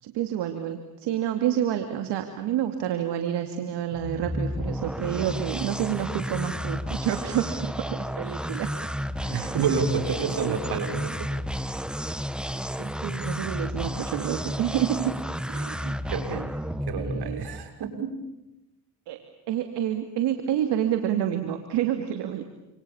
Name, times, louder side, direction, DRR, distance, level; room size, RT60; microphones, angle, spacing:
voice 1, 0.0-8.7 9.2-9.5 10.2-10.6 12.8-15.1 15.5-16.5 16.9-17.5 19.1-22.4, right 10 dB, 85° right, 7 dB, 2.7 m, -29 dB
sound 1, 3.9-17.7, equal, ahead, 1.3 m, -32 dB
voice 2, 9.3-11.3 16.1-16.4 16.9-18.1, right 6 dB, 70° right, 6 dB, 6.6 m, -28 dB
28.5 x 28.0 x 7.2 m, 0.96 s
cardioid pair, 90°, 41 cm